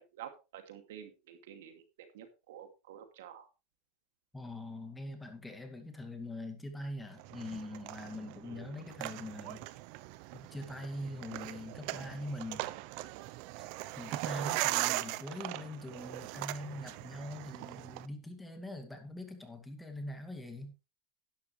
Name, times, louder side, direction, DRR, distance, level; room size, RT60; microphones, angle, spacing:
voice 1, 0.0-1.8 2.1-3.5 8.4-8.7, right 9 dB, 85° right, 7 dB, 2.5 m, -50 dB
voice 2, 4.3-9.7 10.3-12.6 13.6-13.7 14.0-20.7, left 1 dB, 5° left, 5 dB, 2.3 m, -43 dB
sound 1, 7.2-18.1, right 18 dB, 60° right, 0.7 m, -39 dB
11.5 x 10.5 x 3.3 m, 0.28 s
supercardioid pair, 130°, 0 cm